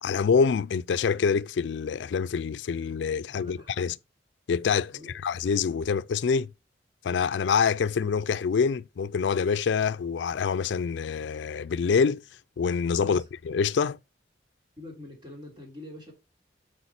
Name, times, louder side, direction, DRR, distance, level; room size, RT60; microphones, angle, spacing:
voice 1, 0.0-3.9 4.5-6.5 7.0-12.2 12.6-14.0, left 6 dB, 80° left, 0.4 m, -26 dB
voice 2, 3.3-4.0 4.9-5.1 13.0-13.2 14.8-16.1, left 1 dB, 25° right, 3.1 m, -45 dB
8.2 x 5.2 x 4.3 m
head